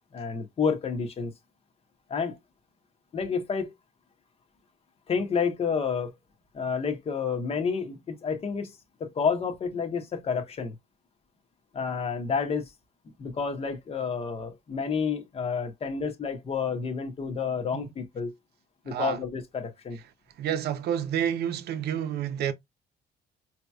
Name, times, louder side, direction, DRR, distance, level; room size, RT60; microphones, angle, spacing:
voice 1, 0.1-1.3 2.1-2.4 3.1-3.7 5.1-6.1 6.5-8.7 9.0-10.7 11.7-12.7 13.2-18.3 18.8-20.0, left 5 dB, 35° left, 1.0 m, -29 dB
voice 2, 20.4-22.5, right 9 dB, 65° right, 0.7 m, -29 dB
5.1 x 2.8 x 2.3 m
cardioid pair, 155°, 18 cm